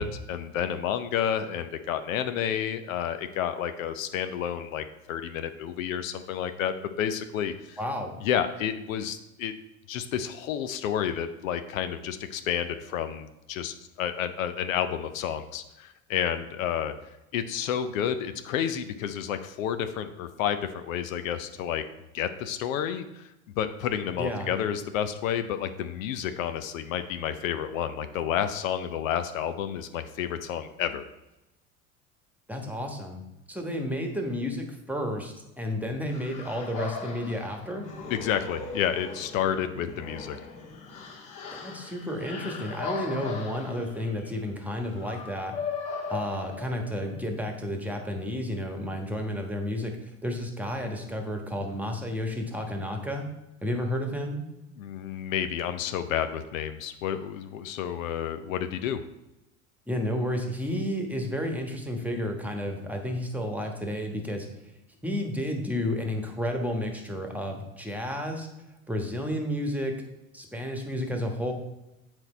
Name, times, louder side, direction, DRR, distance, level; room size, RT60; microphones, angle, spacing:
voice 1, 0.0-7.8 8.2-9.5 9.9-16.9 17.3-21.8 22.1-23.3 23.6-31.0 38.1-40.4 54.8-59.0, left 9 dB, 70° left, 10 dB, 0.7 m, -30 dB
voice 2, 7.8-8.2 24.2-24.5 32.5-37.9 41.6-45.5 46.1-53.3 53.6-54.4 59.9-64.5 65.0-68.5 68.9-70.0 70.3-71.5, left 1 dB, 5° right, 3 dB, 1.3 m, -31 dB
sound 1, 36.1-47.2, left 4 dB, 50° left, 1.7 m, -39 dB
7.8 x 4.5 x 4.3 m, 0.95 s
hypercardioid pair, 80°, 42 cm